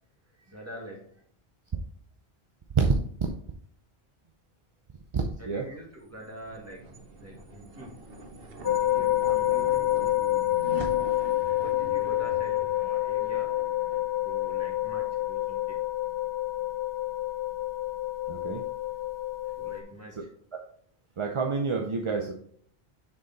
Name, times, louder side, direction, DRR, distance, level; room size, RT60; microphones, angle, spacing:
voice 1, 0.5-1.0 5.5-6.8 7.2-8.0 8.8-10.6 11.6-13.5 14.2-15.8 19.6-20.1, right 1 dB, 15° right, -2 dB, 1.8 m, -45 dB
voice 2, 5.1-5.7 18.3-18.6 20.2-20.3 21.2-22.3, right 4 dB, 40° right, 2 dB, 0.5 m, -27 dB
sound 1, 5.7-16.3, right 2 dB, 65° right, 1.1 m, -45 dB
sound 2, 8.6-19.8, left 15 dB, 20° left, 0.7 m, -28 dB
6.5 x 4.8 x 3.9 m, 0.62 s
omnidirectional pair, 1.1 m